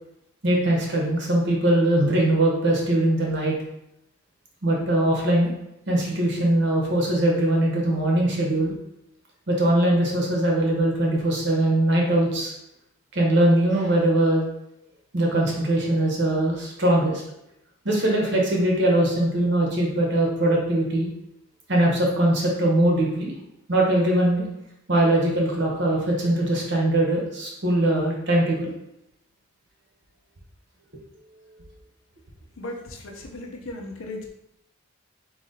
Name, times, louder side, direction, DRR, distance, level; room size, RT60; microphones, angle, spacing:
voice 1, 0.4-3.5 4.6-5.5 5.9-8.7 9.5-12.5 13.1-14.4 15.1-17.2 17.8-21.1 21.7-23.3 23.7-24.4 24.9-28.7, right 1 dB, 55° right, -1 dB, 0.9 m, -21 dB
voice 2, 32.6-34.3, left 2 dB, 75° left, 2 dB, 0.7 m, -36 dB
4.0 x 2.9 x 3.8 m, 0.81 s
head